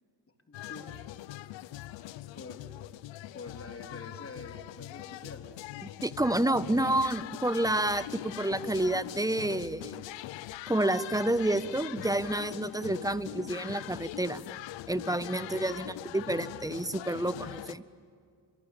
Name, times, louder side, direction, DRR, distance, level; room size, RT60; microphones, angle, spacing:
sound 1, 0.5-17.7, left 15 dB, 85° left, 0.8 m, -42 dB
voice 1, 0.5-0.9 1.7-1.9 2.3-2.6 3.3-5.7 15.7-15.8, left 3 dB, 30° left, 5 dB, 3.8 m, -46 dB
voice 2, 6.0-10.0 10.7-14.5 14.9-17.8, right 1 dB, 10° right, 15 dB, 1.2 m, -29 dB
28.5 x 24.0 x 8.6 m, 2.2 s
supercardioid pair, 65°, 43 cm